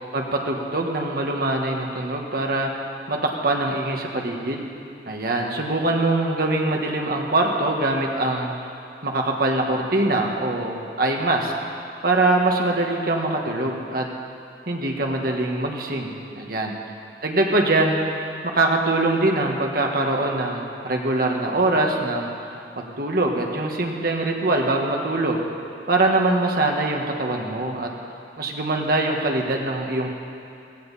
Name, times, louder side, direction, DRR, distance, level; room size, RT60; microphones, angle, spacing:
voice 1, 0.1-2.7 3.1-4.6 5.1-8.5 9.0-11.5 12.0-14.1 14.7-16.7 17.2-18.0 18.5-22.3 22.8-25.5 25.9-27.9 28.4-30.1, right 2 dB, 55° right, 1 dB, 1.5 m, -23 dB
15.5 x 15.5 x 4.2 m, 2.6 s
head